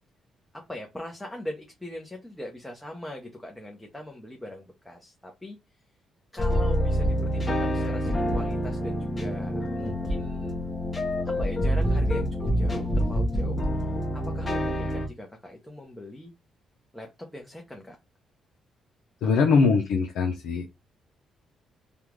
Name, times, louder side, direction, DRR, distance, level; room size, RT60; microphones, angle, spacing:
voice 1, 0.7-5.6 6.3-10.6 11.2-13.6 14.1-16.3 16.9-18.0 19.3-19.4, left 1 dB, 10° left, 1 dB, 0.8 m, -40 dB
sound 1, 6.4-15.1, equal, 25° left, 1.1 m, -26 dB
voice 2, 19.2-20.7, left 4 dB, 85° left, 2 dB, 0.6 m, -22 dB
3.4 x 2.4 x 3.1 m, 0.23 s
cardioid pair, 90°, 0 cm